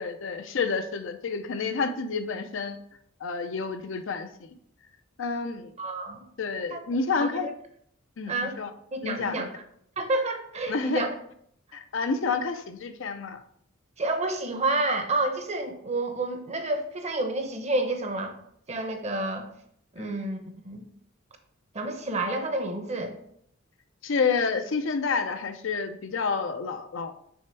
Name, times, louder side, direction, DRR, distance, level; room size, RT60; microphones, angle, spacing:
voice 1, 0.0-2.8 3.2-4.5 5.2-5.7 6.4-7.5 8.2-8.7 9.0-9.5 10.7-11.0 11.7-13.4 20.0-20.1 24.0-27.1, left 4 dB, 70° left, 8 dB, 0.6 m, -29 dB
voice 2, 5.8-6.3 6.7-6.8 7.1-7.5 8.3-8.6 8.9-9.6 10.0-11.1 14.0-18.3 18.7-19.5 19.9-20.4 20.6-20.9 21.7-23.1, right 2 dB, 35° right, 6 dB, 0.8 m, -29 dB
6.4 x 3.4 x 4.5 m, 0.68 s
head